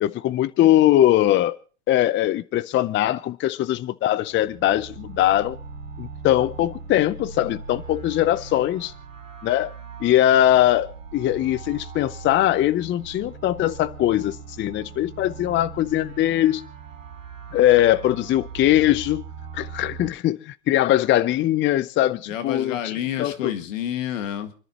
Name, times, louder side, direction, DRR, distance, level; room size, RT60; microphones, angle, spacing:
voice 1, 0.0-1.6 1.9-5.6 6.0-8.9 9.4-9.7 10.0-16.6 17.5-19.2 19.5-22.8 23.2-23.5, left 13 dB, 30° left, 0.6 m, -21 dB
sound 1, 4.2-20.1, right 5 dB, 85° right, 3.7 m, -40 dB
voice 2, 22.3-24.5, left 10 dB, 75° left, 2.0 m, -29 dB
29.0 x 11.0 x 3.0 m
hypercardioid pair, 95°, 38 cm